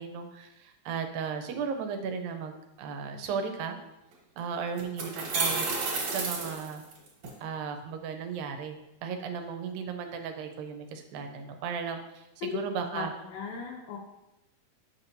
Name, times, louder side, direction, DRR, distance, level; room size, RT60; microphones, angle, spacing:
voice 1, 0.0-3.8 4.4-5.7 6.1-6.8 7.4-13.1, right 6 dB, 85° right, 5 dB, 2.4 m, -35 dB
sound 1, 4.1-4.2 4.8-7.3, right 4 dB, 60° right, 2.4 m, -31 dB
voice 2, 12.9-14.0, left 7 dB, 75° left, 1 dB, 2.0 m, -36 dB
7.9 x 5.8 x 2.7 m, 0.93 s
omnidirectional pair, 4.0 m